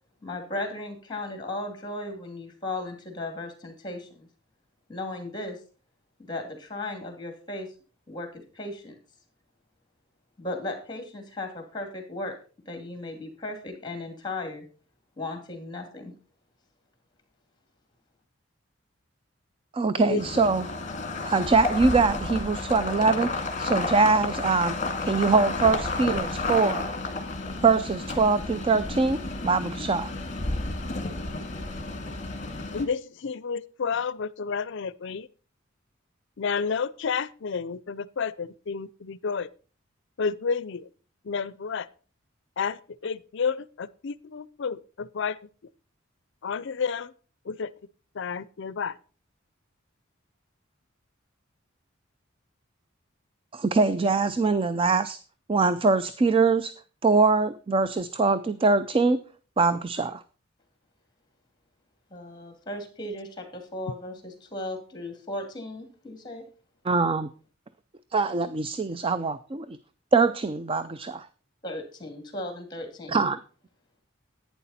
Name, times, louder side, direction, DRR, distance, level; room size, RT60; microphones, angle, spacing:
voice 1, 0.2-4.3 4.9-5.6 6.2-7.7 8.1-8.9 10.4-12.3 12.7-14.6 15.2-16.1 62.1-66.4 71.6-73.3, left 2 dB, 20° left, 2.6 m, -36 dB
voice 2, 19.7-20.7 21.2-24.7 25.0-26.8 27.6-30.1 53.5-55.2 55.5-56.7 57.0-59.2 59.6-60.2 66.9-67.3 68.1-69.8 70.1-71.3 73.1-73.4, right 4 dB, 25° right, 0.4 m, -23 dB
sound 1, 20.2-32.8, left 3 dB, 40° left, 1.9 m, -31 dB
voice 3, 32.7-35.3 36.4-39.5 40.2-40.9 41.3-41.9 42.6-45.4 46.4-47.1 47.5-47.7 48.2-49.0, left 5 dB, 65° left, 0.5 m, -30 dB
11.0 x 9.2 x 4.2 m
head